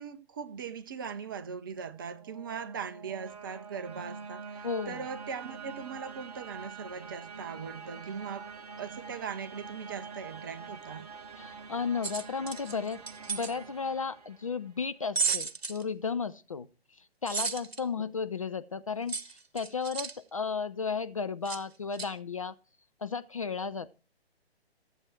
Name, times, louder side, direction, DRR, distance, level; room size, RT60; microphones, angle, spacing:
voice 1, 0.0-11.1 18.0-18.1, right 6 dB, 20° right, 0.6 m, -40 dB
sound 1, 1.8-14.8, right 5 dB, 40° right, 1.2 m, -46 dB
voice 2, 4.6-5.0 11.4-13.0 13.3-16.7 17.2-22.5 23.0-24.0, left 5 dB, 35° left, 0.4 m, -34 dB
sound 2, 12.0-13.5 15.2-15.8 17.3-17.8 19.1-20.2 21.5-21.6 21.9-22.1, right 5 dB, 70° right, 1.1 m, -33 dB
14.0 x 7.9 x 4.4 m
figure-of-eight pair, 135°, 32 cm